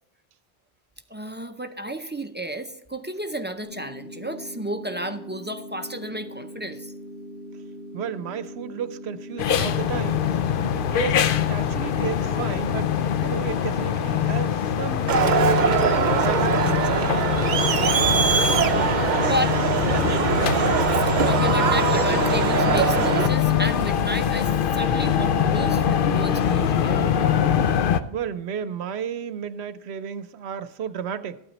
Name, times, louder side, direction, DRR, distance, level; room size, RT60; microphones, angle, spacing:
voice 1, 1.1-6.9 17.7-18.3 19.2-19.6 21.2-27.1, equal, 15° right, 0.4 m, -32 dB
sound 1, 3.6-13.6, equal, 75° left, 5.5 m, -41 dB
voice 2, 7.9-10.2 10.7-12.9 13.2-15.8 16.2-17.1 28.1-31.4, right 8 dB, 80° right, 0.9 m, -33 dB
sound 2, 9.4-28.0, left 8 dB, 60° left, 0.7 m, -23 dB
Crowd, 15.1-23.3, right 6 dB, 50° right, 0.7 m, -22 dB
13.5 x 8.9 x 4.1 m
omnidirectional pair, 1.1 m